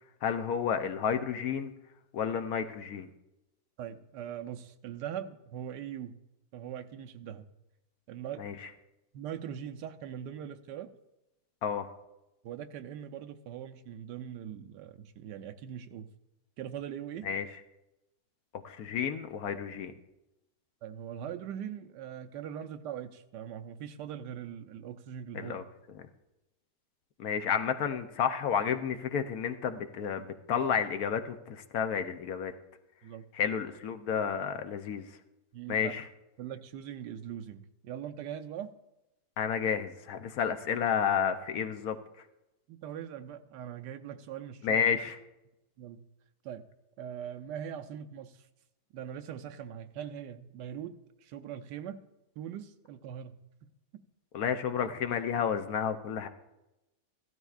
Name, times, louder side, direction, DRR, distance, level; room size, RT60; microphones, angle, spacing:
voice 1, 0.2-1.7 2.1-3.1 8.4-8.5 11.6-11.9 17.2-17.5 18.6-19.9 25.3-25.6 27.2-32.5 33.3-35.1 35.7-36.1 39.4-42.0 44.6-45.2 54.3-56.3, left 7 dB, 70° left, 8 dB, 1.1 m, -31 dB
voice 2, 3.8-6.2 6.5-7.5 8.1-8.4 9.1-10.9 12.4-16.1 16.6-17.3 20.8-25.6 33.0-33.2 35.5-35.9 36.4-38.7 42.7-44.8 45.8-46.0 46.4-46.6 47.0-48.4 48.9-50.9 51.2-52.0 52.4-53.3 53.6-53.7, right 9 dB, 85° right, 8 dB, 1.3 m, -41 dB
15.5 x 12.5 x 2.4 m, 0.94 s
omnidirectional pair, 1.8 m